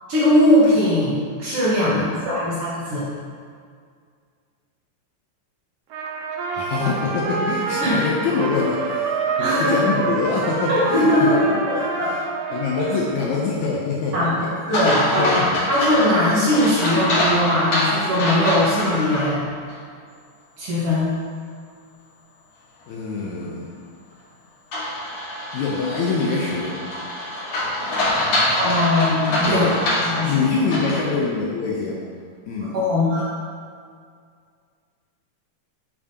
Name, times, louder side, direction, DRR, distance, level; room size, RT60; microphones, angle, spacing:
voice 1, 0.1-3.1 7.8-8.0 9.4-9.7 10.7-12.1 12.5-12.6 14.1-19.4 20.6-21.1 28.5-29.7 30.0-30.5 32.6-33.3, left 1 dB, 55° right, -8 dB, 1.9 m, -20 dB
voice 2, 1.8-2.2 6.5-11.6 12.0-12.2 12.5-14.2 14.7-14.9 15.2-15.5 22.9-23.7 25.5-26.8 29.5-29.7 30.3-32.0 32.5-32.7, left 4 dB, 75° left, -4 dB, 1.8 m, -25 dB
Trumpet, 5.9-13.2, right 3 dB, 85° right, 1.3 m, -27 dB
sound 1, 14.7-19.2 19.7-19.8 24.7-31.1, left 1 dB, 55° left, 2.8 m, -24 dB
7.3 x 7.0 x 2.8 m, 2.1 s
omnidirectional pair, 3.8 m